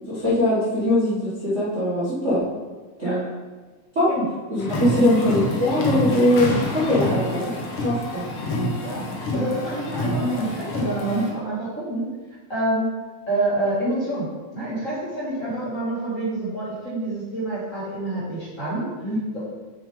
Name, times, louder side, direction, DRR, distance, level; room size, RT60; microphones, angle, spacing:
voice 1, 0.0-2.4 3.0-3.2 3.9-4.1 4.5-7.4 7.8-8.2 19.0-19.2, left 1 dB, 30° right, -10 dB, 1.4 m, -21 dB
sound 1, 4.6-11.3, left 1 dB, 60° left, 1.8 m, -27 dB
voice 2, 9.3-12.0 12.5-12.9 13.3-14.3 14.5-18.9 19.3-19.4, right 1 dB, 30° left, -9 dB, 1.7 m, -27 dB
7.3 x 6.7 x 3.6 m, 1.3 s
omnidirectional pair, 3.3 m